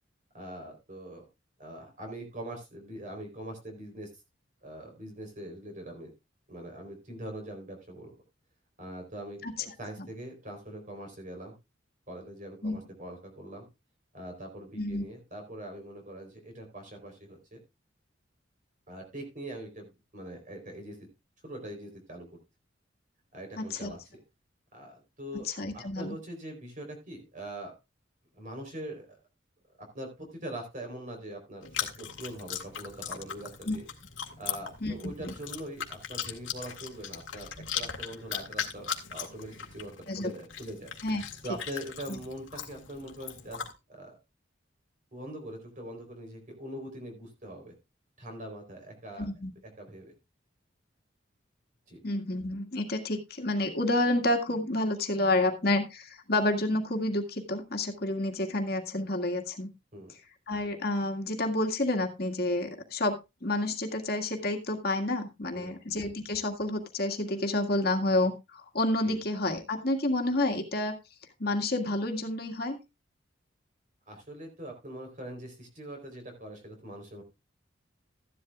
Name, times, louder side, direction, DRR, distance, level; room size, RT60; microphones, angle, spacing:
voice 1, 0.3-1.2 1.6-4.1 4.6-6.1 6.5-8.1 8.8-11.5 12.1-13.7 14.1-17.6 18.9-21.0 21.4-22.4 23.3-24.2 24.7-25.5 25.7-27.7 28.3-29.2 29.8-31.7 32.0-33.9 34.4-40.9 41.4-43.6 44.0-44.2 45.1-47.7 48.2-49.3 49.8-50.1 51.9-52.0 59.9-60.1 65.5-65.8 69.0-69.2 74.1-77.2, right 1 dB, 40° right, 4 dB, 3.9 m, -42 dB
voice 2, 23.6-23.9 25.4-26.1 33.6-33.8 34.8-35.3 40.1-40.3 41.0-41.2 42.1-42.2 49.2-49.5 52.0-59.7 60.5-70.9 71.4-72.8, left 2 dB, 55° left, 3 dB, 1.9 m, -29 dB
Chewing mastication, 31.6-43.7, left 8 dB, 85° left, 1.9 m, -39 dB
14.5 x 11.0 x 2.4 m, 0.25 s
head